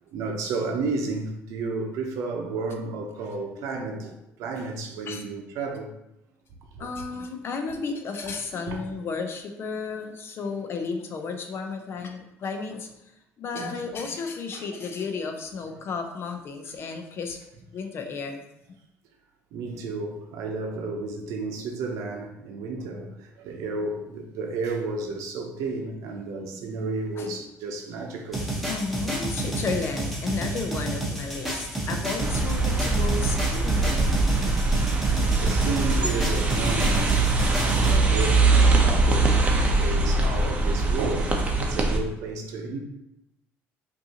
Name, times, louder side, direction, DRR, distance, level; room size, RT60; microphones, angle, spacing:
voice 1, 0.1-5.9 6.7-6.9 8.7-8.8 13.5-13.8 14.5-14.7 19.5-28.6 31.7-31.9 35.2-37.2 37.5-42.8, right 3 dB, 75° right, 0.8 m, -32 dB
voice 2, 6.8-12.9 13.4-17.4 17.7-18.4 27.2-27.4 28.7-34.2, left 4 dB, 45° left, 0.7 m, -33 dB
sound 1, 28.3-38.0, right 1 dB, ahead, 1.1 m, -30 dB
sound 2, 32.2-42.0, right 3 dB, 25° right, 0.7 m, -22 dB
5.2 x 2.7 x 2.9 m
supercardioid pair, 95°, 6 cm